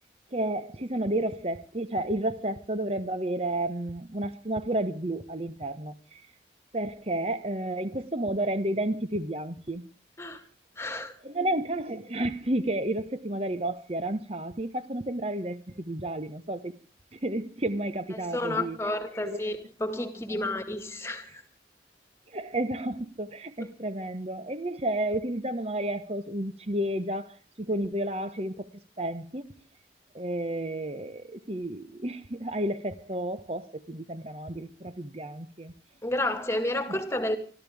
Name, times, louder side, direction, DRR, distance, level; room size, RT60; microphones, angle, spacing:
voice 1, 0.3-6.2 6.7-9.8 11.2-16.7 17.1-18.8 19.2-19.5 20.3-20.4 22.3-28.7 29.0-29.6 30.1-35.7 36.9-37.0, right 1 dB, 35° right, 1.2 m, -31 dB
voice 2, 10.8-11.2 18.1-21.4 23.6-23.7 36.0-37.4, left 1 dB, 15° left, 2.0 m, -31 dB
27.5 x 13.0 x 3.6 m
head